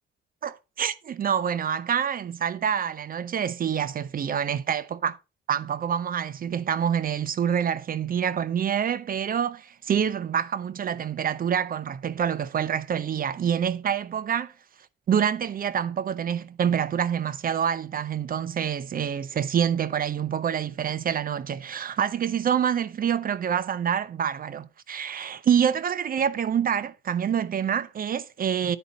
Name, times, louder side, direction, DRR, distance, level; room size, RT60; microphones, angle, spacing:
voice 1, 0.4-5.2 5.5-14.5 15.1-28.8, right 8 dB, 45° right, 0.6 m, -26 dB
9.9 x 5.1 x 4.0 m
cardioid pair, 90°, 20 cm